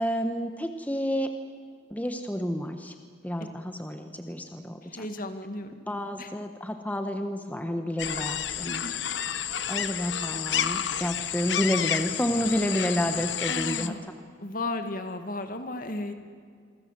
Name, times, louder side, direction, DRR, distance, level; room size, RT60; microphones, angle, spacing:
voice 1, 0.0-1.3 1.9-2.9 3.2-5.1 5.9-8.8 9.7-13.9, equal, 10° left, 6 dB, 1.2 m, -30 dB
voice 2, 4.8-5.9 6.2-6.3 8.6-9.0 13.5-14.1 14.4-16.1, left 2 dB, 50° left, 8 dB, 2.1 m, -35 dB
sound 1, 8.0-13.9, left 9 dB, 75° left, 1.0 m, -30 dB
27.5 x 24.0 x 7.5 m, 2.1 s
head